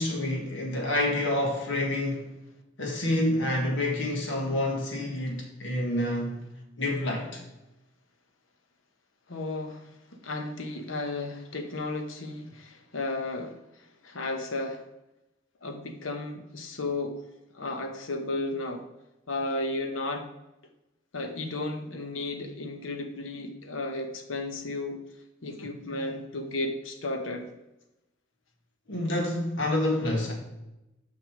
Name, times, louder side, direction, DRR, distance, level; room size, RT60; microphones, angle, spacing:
voice 1, 0.0-2.3 2.8-6.4 6.8-7.4 28.9-30.3, left 1 dB, 65° left, 1.7 m, -28 dB
voice 2, 9.3-9.9 10.2-14.8 15.6-17.2 17.5-18.8 19.3-20.3 21.1-25.0 25.4-27.5, left 2 dB, 85° left, 1.0 m, -34 dB
6.2 x 5.7 x 5.0 m
head